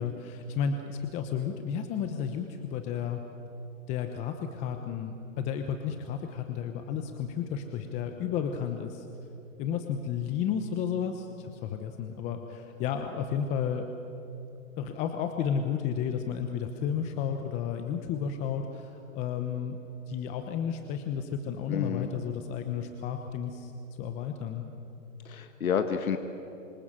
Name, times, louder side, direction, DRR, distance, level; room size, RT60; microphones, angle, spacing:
voice 1, 0.0-3.2 3.9-9.1 9.6-13.9 14.8-19.8 20.1-23.7 24.0-24.6, left 7 dB, 15° left, 6 dB, 0.9 m, -32 dB
voice 2, 21.7-22.1 25.3-26.2, left 7 dB, 80° left, 7 dB, 1.8 m, -29 dB
28.0 x 26.5 x 7.5 m, 2.9 s
hypercardioid pair, 155°, 42 cm